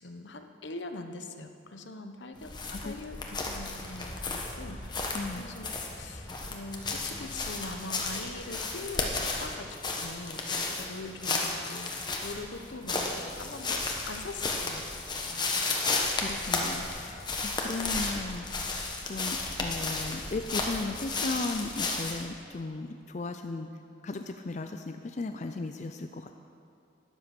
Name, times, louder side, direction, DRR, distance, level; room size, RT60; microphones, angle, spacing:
voice 1, 0.0-5.1 5.3-14.8 15.3-15.7, left 2 dB, 75° left, 7 dB, 0.9 m, -42 dB
sound 1, 2.4-22.3, left 3 dB, 25° left, 1.2 m, -33 dB
voice 2, 15.4-18.5 19.1-23.7 24.0-26.4, left 3 dB, 40° left, 6 dB, 0.4 m, -36 dB
12.5 x 10.5 x 6.0 m, 2.5 s
head